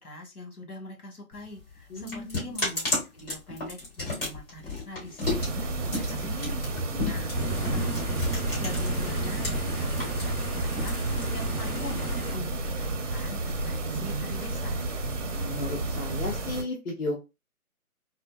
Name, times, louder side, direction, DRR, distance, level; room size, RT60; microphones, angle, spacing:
voice 1, 0.0-14.9, left 1 dB, 85° left, 1 dB, 1.6 m, -43 dB
sound 1, 1.3-9.5 9.8-11.7, left 2 dB, 40° left, 1.7 m, -33 dB
voice 2, 1.9-2.6 6.9-7.1 15.3-17.2, left 2 dB, 65° left, -2 dB, 1.0 m, -34 dB
sound 2, 5.2-16.6, right 2 dB, 55° right, 0.8 m, -31 dB
sound 3, 7.3-12.3, right 1 dB, 10° left, 0.8 m, -33 dB
4.2 x 2.1 x 2.2 m, 0.26 s
figure-of-eight pair, 160°, 44 cm